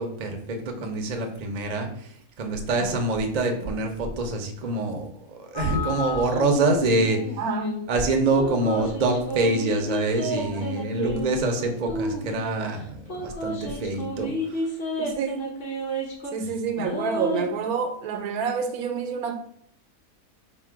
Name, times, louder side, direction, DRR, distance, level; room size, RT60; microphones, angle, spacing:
voice 1, 0.0-2.1 2.4-5.1 5.3-7.4 7.9-14.7, right 2 dB, 50° right, 0.5 m, -25 dB
sound 1, 5.5-6.7 7.0-7.8 8.4-12.5 13.1-16.4 16.8-17.5, equal, 45° left, 1.0 m, -31 dB
voice 2, 7.4-7.8 10.3-10.6 11.0-11.3 15.0-15.4 16.3-19.3, right 6 dB, 80° right, 1.1 m, -28 dB
4.1 x 2.2 x 4.6 m
omnidirectional pair, 1.5 m